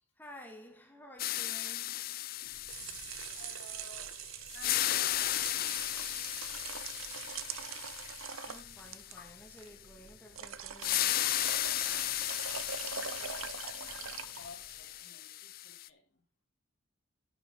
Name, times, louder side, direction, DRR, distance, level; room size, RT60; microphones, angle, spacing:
voice 1, 0.0-2.3 8.2-11.5, equal, 10° left, 2.3 m, -53 dB
sound 1, 1.2-4.1 4.5-9.3 10.8-15.9, left 14 dB, 45° left, 0.4 m, -35 dB
sound 2, 2.5-14.8, right 8 dB, 90° right, 0.9 m, -44 dB
voice 2, 3.3-4.2 4.5-5.7 12.5-16.2, left 2 dB, 70° left, 4.2 m, -54 dB
sound 3, 8.7-9.3 10.3-15.1, right 5 dB, 70° right, 3.5 m, -66 dB
10.0 x 9.0 x 4.1 m
head